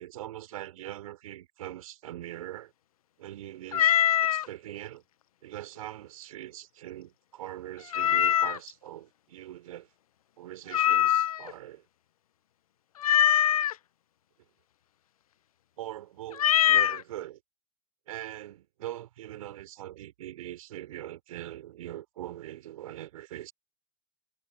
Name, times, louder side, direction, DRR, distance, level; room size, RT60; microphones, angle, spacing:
voice 1, 0.0-2.7 3.2-5.0 5.4-9.9 10.4-11.8 15.8-17.4 18.1-23.5, right 13 dB, 70° right, 4.4 m, -42 dB
Meow, 3.7-4.5 7.9-8.7 10.7-11.5 13.0-13.7 16.3-17.0, left 11 dB, 75° left, 1.0 m, -23 dB
hypercardioid pair, 85°, 18 cm